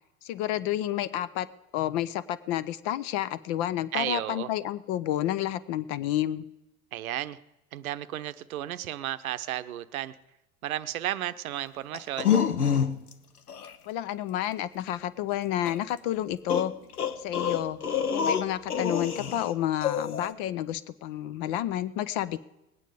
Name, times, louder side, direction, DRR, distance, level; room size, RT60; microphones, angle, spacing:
voice 1, 0.2-1.5 1.7-6.5 13.9-16.7 17.2-17.8 18.1-22.4, left 12 dB, 45° left, 16 dB, 0.7 m, -30 dB
voice 2, 3.9-4.5 6.9-7.4 7.7-10.2 10.6-12.3, right 13 dB, 70° right, 13 dB, 0.7 m, -33 dB
sound 1, 11.9-13.1 13.5-13.7 15.6-15.8 16.5-19.5 19.8-20.3, left 7 dB, 85° left, 0.9 m, -27 dB
20.0 x 9.2 x 5.1 m, 0.96 s
figure-of-eight pair, 80°, 44 cm